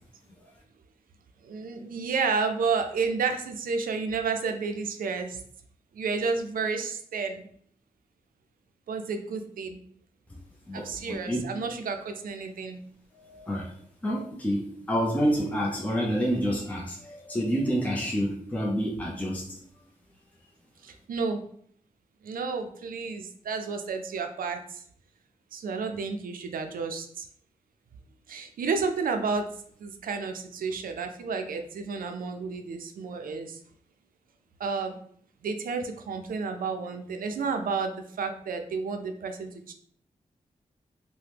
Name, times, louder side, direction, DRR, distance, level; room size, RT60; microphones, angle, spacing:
voice 1, 1.4-5.4 5.9-7.5 8.9-9.8 10.7-12.8 20.8-21.4 22.2-24.8 25.5-27.3 28.3-29.5 29.8-33.6 34.6-35.0 35.4-39.7, right 5 dB, 85° right, 6 dB, 0.4 m, -31 dB
voice 2, 10.7-11.5 13.1-19.6, equal, 10° left, -3 dB, 0.5 m, -29 dB
2.8 x 2.0 x 3.2 m, 0.62 s
wide cardioid pair, 85°, 14 cm